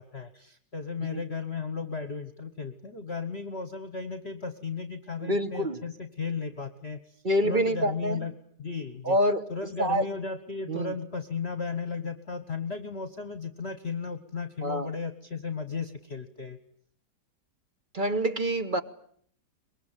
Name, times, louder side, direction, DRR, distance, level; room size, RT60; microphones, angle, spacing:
voice 1, 0.0-8.3 8.6-9.2 9.5-16.6, left 5 dB, 40° left, 9 dB, 1.3 m, -35 dB
voice 2, 5.2-5.8 7.2-8.2 9.0-9.4 9.8-10.0 10.7-10.9 14.6-14.9 17.9-18.8, equal, 35° right, 11 dB, 1.2 m, -26 dB
24.0 x 22.0 x 9.0 m, 0.63 s
omnidirectional pair, 1.8 m